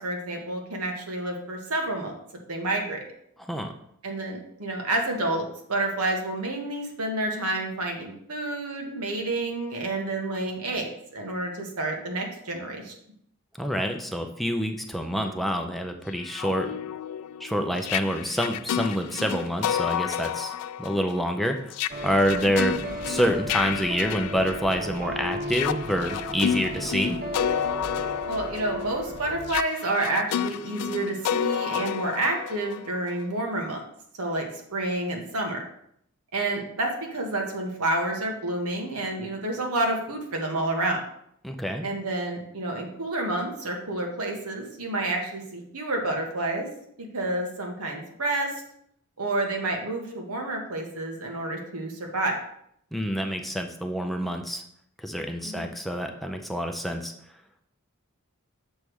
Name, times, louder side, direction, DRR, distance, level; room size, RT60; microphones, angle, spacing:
voice 1, 0.0-2.1 2.5-3.0 4.0-12.9 28.3-33.8 34.2-35.6 36.3-41.0 41.8-46.7 47.0-48.5 49.2-52.4 55.4-55.7, right 2 dB, 90° right, 1 dB, 1.5 m, -29 dB
voice 2, 13.6-16.7 17.4-20.5 20.8-21.7 22.0-27.2 41.4-41.9 52.9-54.6 55.0-57.1, equal, ahead, 4 dB, 0.5 m, -27 dB
sound 1, 16.1-25.0 25.4-33.2, left 9 dB, 90° left, 0.3 m, -31 dB
sound 2, 21.9-29.6, left 1 dB, 40° right, 0.8 m, -35 dB
7.1 x 3.4 x 6.2 m, 0.71 s
head